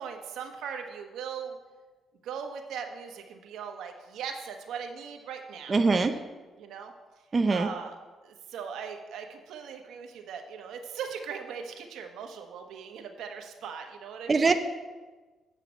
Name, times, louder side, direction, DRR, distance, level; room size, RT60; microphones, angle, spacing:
voice 1, 0.0-1.6 2.2-5.8 6.6-6.9 7.5-8.0 8.2-14.5, right 7 dB, 80° right, 4 dB, 1.1 m, -39 dB
voice 2, 5.7-6.2 7.3-7.7 14.3-14.5, right 4 dB, 30° right, 7 dB, 0.6 m, -22 dB
8.1 x 5.6 x 7.3 m, 1.3 s
cardioid pair, 90°, 0 cm